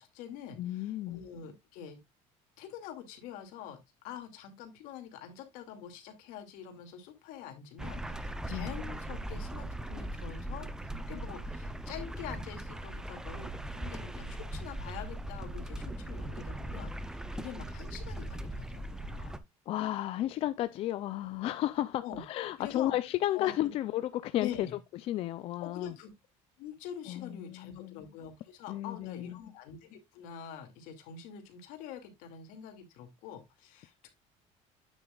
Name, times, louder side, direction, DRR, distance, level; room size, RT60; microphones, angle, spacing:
voice 1, 0.0-2.0 2.6-3.8 4.0-19.4 22.0-22.2 22.6-22.9 23.3-23.7 24.3-24.7 25.6-26.1 26.6-34.1, left 8 dB, 80° left, 2.3 m, -45 dB
voice 2, 0.6-1.2 8.5-8.7 19.7-24.7 25.0-25.9 27.1-28.1 28.7-29.4, left 13 dB, 45° left, 0.4 m, -33 dB
sound 1, 7.8-19.4, right 1 dB, 5° right, 0.5 m, -39 dB
9.1 x 7.3 x 2.3 m
cardioid pair, 165°, 14 cm